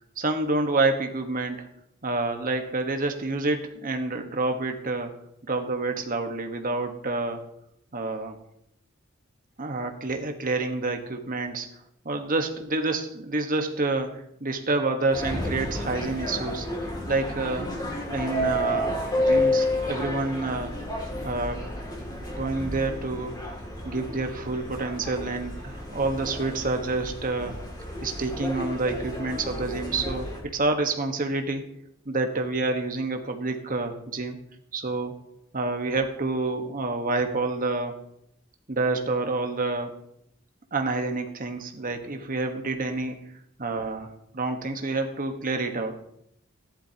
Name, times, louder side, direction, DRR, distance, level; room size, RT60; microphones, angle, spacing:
voice 1, 0.2-1.7 2.0-5.1 5.5-7.4 7.9-8.4 9.6-11.7 12.0-16.7 17.1-17.7 18.1-20.7 21.2-23.4 23.8-27.6 28.0-31.6 32.0-34.4 34.7-35.1 35.5-37.9 38.7-39.9 40.7-43.2 43.6-44.1 44.3-46.0, right 3 dB, 40° right, 5 dB, 1.3 m, -28 dB
sound 1, 15.1-30.4, left 1 dB, 20° left, 2.5 m, -31 dB
14.5 x 11.5 x 2.9 m, 0.75 s
head